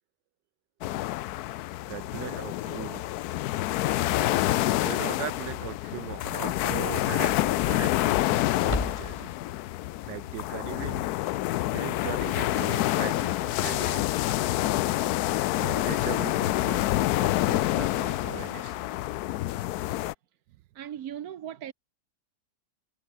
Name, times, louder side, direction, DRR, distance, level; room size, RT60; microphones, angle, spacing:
sound 1, 0.8-20.1, left 16 dB, 70° left, 1.0 m, -27 dB
voice 1, 1.9-3.0 4.8-9.3 10.1-11.1 11.7-14.1 15.6-16.8 17.1-18.8, right 15 dB, 80° right, 1.3 m, -39 dB
sound 2, 8.6-9.4, left 3 dB, 20° left, 1.3 m, -34 dB
voice 2, 20.7-21.7, right 10 dB, 60° right, 1.3 m, -38 dB
omnidirectional pair, 1.9 m